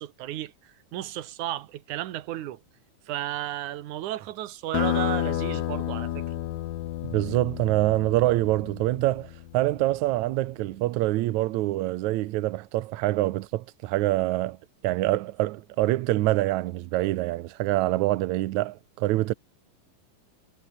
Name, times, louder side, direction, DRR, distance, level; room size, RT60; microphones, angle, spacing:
voice 1, 0.0-2.6 3.1-6.2, right 13 dB, 65° right, 2.2 m, -33 dB
sound 1, 4.7-9.9, left 13 dB, 65° left, 2.1 m, -31 dB
voice 2, 7.1-14.6 14.8-19.3, right 17 dB, 85° right, 1.6 m, -25 dB
omnidirectional pair, 4.3 m